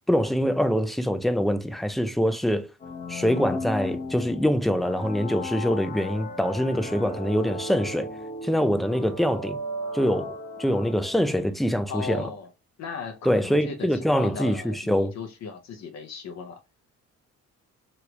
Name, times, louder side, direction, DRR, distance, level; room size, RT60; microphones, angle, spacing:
voice 1, 0.1-2.7 3.1-8.1 8.4-9.6 9.9-12.3 13.3-15.1, equal, ahead, 0.3 m, -24 dB
sound 1, 2.8-11.4, left 2 dB, 30° left, 0.8 m, -36 dB
voice 2, 11.9-12.5 12.8-16.6, left 5 dB, 60° left, 0.6 m, -37 dB
3.0 x 2.4 x 3.1 m
cardioid pair, 90°, 30 cm